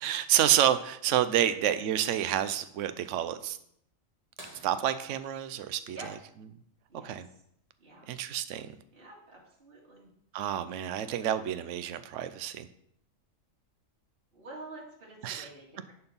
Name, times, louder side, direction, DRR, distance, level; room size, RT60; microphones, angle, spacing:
voice 1, 0.0-3.6 4.6-6.0 7.0-7.2 8.1-8.7 10.3-12.7 15.2-15.4, right 11 dB, 70° right, 12 dB, 0.9 m, -28 dB
sound 1, 4.4-6.8 8.8-8.9 11.1-11.2 12.9-13.2 14.0-14.1, right 1 dB, 25° right, 1.8 m, -53 dB
voice 2, 6.9-7.4 7.8-8.2 8.9-10.1 14.3-15.9, right 2 dB, 45° right, -4 dB, 2.4 m, -48 dB
10.5 x 4.4 x 5.5 m, 0.70 s
omnidirectional pair, 1.4 m